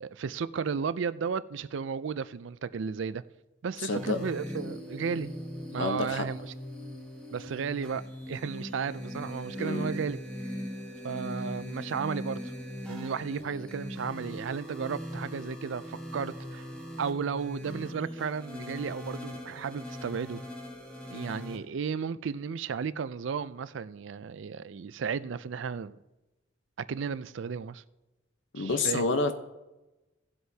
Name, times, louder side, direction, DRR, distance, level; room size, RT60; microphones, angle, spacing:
voice 1, 0.0-3.2 3.6-5.3 5.7-6.4 7.3-10.2 11.0-12.5 12.9-16.7 17.0-20.4 21.1-26.0 26.9-27.8 28.6-29.0, right 6 dB, 70° right, 0.4 m, -34 dB
voice 2, 3.8-4.2 5.8-6.2 9.5-9.9 28.5-29.3, left 3 dB, 70° left, 0.9 m, -29 dB
sound 1, 3.9-21.6, equal, 5° left, 1.2 m, -40 dB
17.0 x 7.9 x 2.8 m
head